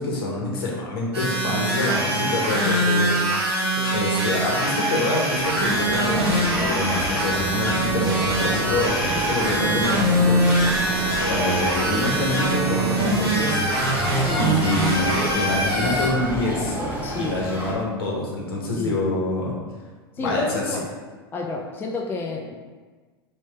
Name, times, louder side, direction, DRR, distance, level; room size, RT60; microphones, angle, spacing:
voice 1, 0.0-3.5 3.9-10.4 11.3-13.6 14.4-16.8 17.1-19.6 20.2-20.6, left 2 dB, 70° left, -3 dB, 1.1 m, -26 dB
sound 1, 1.1-16.1, right 1 dB, 90° right, 1.3 m, -23 dB
sound 2, 5.2-13.1, right 3 dB, 70° right, 0.5 m, -37 dB
sound 3, 5.3-17.7, right 1 dB, 15° right, 1.0 m, -31 dB
voice 2, 17.0-17.4 18.8-19.0 20.2-20.9 21.3-22.5, left 4 dB, 15° left, -1 dB, 0.4 m, -30 dB
3.2 x 3.1 x 3.3 m, 1.4 s
hypercardioid pair, 85°, 13 cm